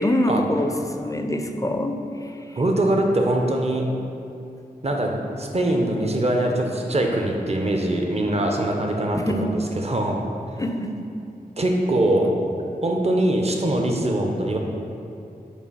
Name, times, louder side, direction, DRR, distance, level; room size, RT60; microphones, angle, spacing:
voice 1, 0.0-2.0 9.1-9.6 10.6-11.0, left 1 dB, 20° left, 5 dB, 0.4 m, -24 dB
voice 2, 2.6-3.9 4.8-10.2 11.6-12.3 12.8-14.6, right 1 dB, 40° right, 1 dB, 0.7 m, -22 dB
7.1 x 2.5 x 5.5 m, 2.6 s
cardioid pair, 50°, 16 cm